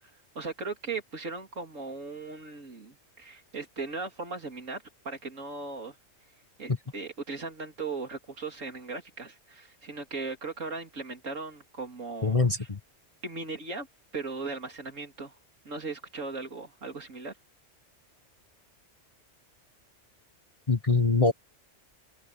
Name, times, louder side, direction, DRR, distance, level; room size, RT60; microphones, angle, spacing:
voice 1, 0.3-6.0 6.6-12.4 13.2-13.9 14.1-15.3 15.6-17.3, right 3 dB, 90° right, 3.4 m, -38 dB
voice 2, 12.2-12.8 20.7-21.3, left 4 dB, 30° left, 1.3 m, -23 dB
open air
omnidirectional pair, 1.3 m